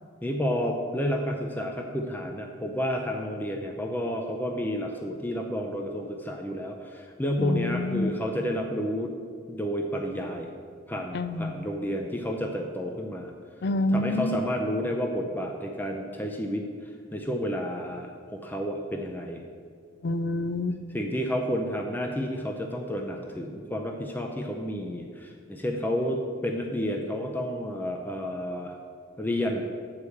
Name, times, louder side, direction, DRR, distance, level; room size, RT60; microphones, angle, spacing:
voice 1, 0.2-9.1 9.5-10.5 10.9-13.3 13.9-16.7 17.1-19.4 20.9-28.8 29.2-29.6, equal, 10° left, 2 dB, 0.5 m, -30 dB
voice 2, 7.4-8.1 11.1-11.7 13.6-14.4 20.0-20.8, left 2 dB, 60° left, 11 dB, 0.4 m, -27 dB
8.1 x 4.8 x 7.1 m, 2.1 s
head